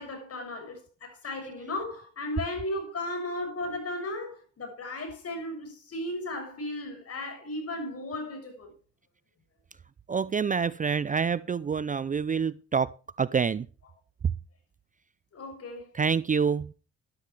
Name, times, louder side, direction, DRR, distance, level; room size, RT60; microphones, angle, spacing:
voice 1, 0.0-8.7 15.3-15.9, left 1 dB, 50° left, 6.8 m, -35 dB
voice 2, 10.1-12.9 13.2-13.7 14.2-14.3 15.9-16.7, right 6 dB, 25° right, 0.4 m, -27 dB
13.0 x 11.5 x 3.4 m
cardioid pair, 90°, 30 cm